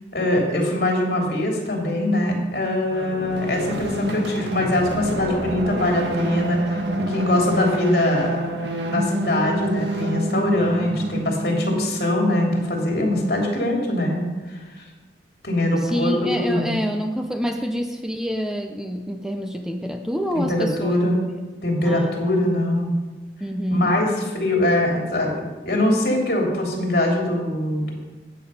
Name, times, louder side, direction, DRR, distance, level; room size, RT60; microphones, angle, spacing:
voice 1, 0.1-8.4 8.8-14.6 15.4-16.8 20.3-21.2 21.6-22.9 23.7-27.9, left 1 dB, 60° left, 0 dB, 3.2 m, -22 dB
sound 1, 2.9-12.1, right 1 dB, 85° right, 1.6 m, -27 dB
voice 2, 15.8-21.0 21.8-22.1 23.4-23.9, equal, 5° right, 4 dB, 0.6 m, -27 dB
14.0 x 8.7 x 5.7 m, 1.2 s
head